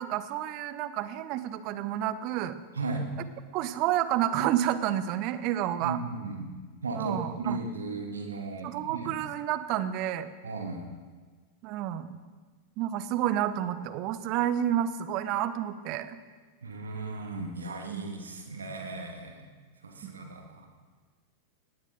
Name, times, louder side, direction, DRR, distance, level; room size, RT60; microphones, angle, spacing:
voice 1, 0.0-2.6 3.5-6.0 6.9-7.6 8.6-10.3 11.6-12.2 12.8-16.2 17.9-18.1 20.0-20.1, right 11 dB, 40° right, 13 dB, 1.0 m, -30 dB
voice 2, 5.8-6.5 6.8-9.1 10.4-10.9 16.6-19.4 19.8-20.7, right 3 dB, 70° right, 3 dB, 2.2 m, -36 dB
19.0 x 18.0 x 3.9 m, 1.4 s
figure-of-eight pair, 90°, 0 cm